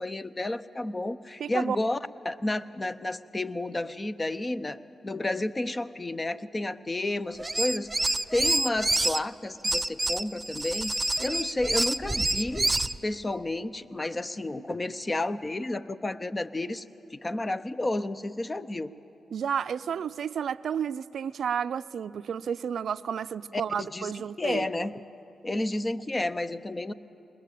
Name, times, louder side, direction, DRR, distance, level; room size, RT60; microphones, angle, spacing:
voice 1, 0.0-2.0 2.2-7.9 8.3-10.9 11.2-12.7 13.0-16.8 17.1-18.9 23.5-25.0 25.4-26.9, left 2 dB, 30° left, 0.8 m, -31 dB
voice 2, 1.4-1.8 19.3-24.9, right 8 dB, 70° right, 0.4 m, -31 dB
sound 1, 7.4-9.2 9.6-13.0, right 2 dB, 20° right, 0.6 m, -27 dB
20.5 x 20.5 x 8.4 m
supercardioid pair, 50°, 0 cm